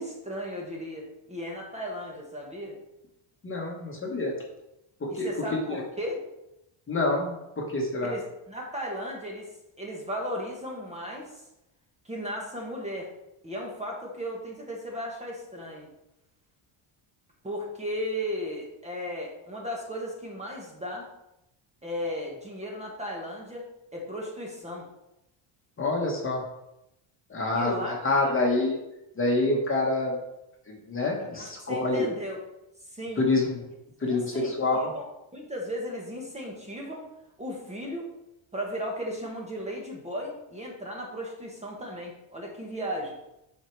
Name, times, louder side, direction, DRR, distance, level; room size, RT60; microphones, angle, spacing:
voice 1, 0.0-2.8 5.1-6.2 8.0-9.5 9.8-11.4 12.0-13.1 13.4-15.9 17.4-21.1 21.8-23.7 23.9-24.9 27.5-28.0 31.2-32.4 32.8-33.3 34.0-35.0 35.3-37.1 37.4-38.1 38.5-43.2, equal, 15° right, -1 dB, 1.4 m, -35 dB
voice 2, 3.4-4.4 5.0-5.3 6.9-8.1 25.8-26.4 27.3-28.8 29.2-30.2 30.7-32.1 33.2-33.6 34.0-34.9, left 2 dB, 25° left, 0 dB, 1.4 m, -27 dB
7.9 x 5.8 x 4.6 m, 0.89 s
cardioid pair, 165°, 49 cm